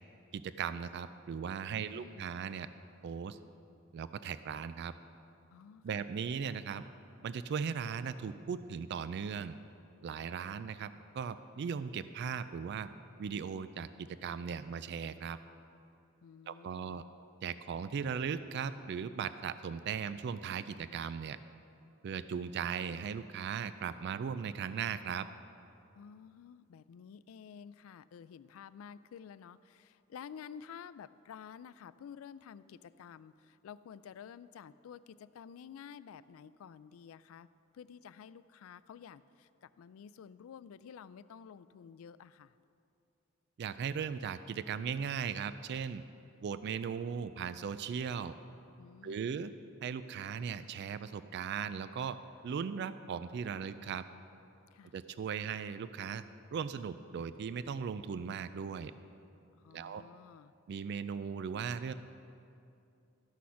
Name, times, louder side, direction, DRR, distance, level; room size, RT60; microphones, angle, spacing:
voice 1, 0.3-2.7 3.0-3.4 3.9-4.9 5.8-6.8 7.2-9.6 10.0-10.9 11.1-12.9 13.2-15.4 16.5-17.0 17.4-21.4 22.0-25.3 43.6-46.0 46.4-48.4 49.0-49.5 49.8-52.2 52.4-54.0 54.9-56.2 56.5-58.9 59.7-60.0 60.7-61.9, right 6 dB, 55° right, 13 dB, 0.3 m, -38 dB
voice 2, 1.7-2.3 5.5-6.1 16.2-17.0 26.0-37.5 37.7-42.5 48.8-49.4 54.7-55.0 59.6-60.5, left 7 dB, 90° left, 17 dB, 0.3 m, -51 dB
13.0 x 6.3 x 5.7 m, 2.6 s
head